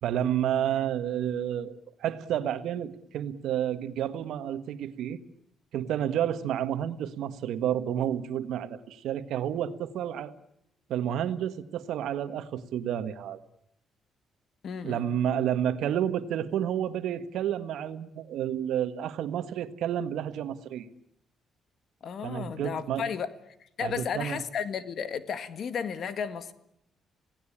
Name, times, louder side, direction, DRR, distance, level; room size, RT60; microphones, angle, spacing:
voice 1, 0.0-5.2 5.7-10.3 10.9-13.4 14.8-20.9 22.2-23.1 23.8-24.4, right 10 dB, 80° right, 11 dB, 1.6 m, -30 dB
voice 2, 14.6-15.0 22.0-23.3 23.8-26.5, left 7 dB, 60° left, 12 dB, 1.9 m, -33 dB
27.5 x 18.0 x 8.8 m, 0.78 s
cardioid pair, 90°, 0 cm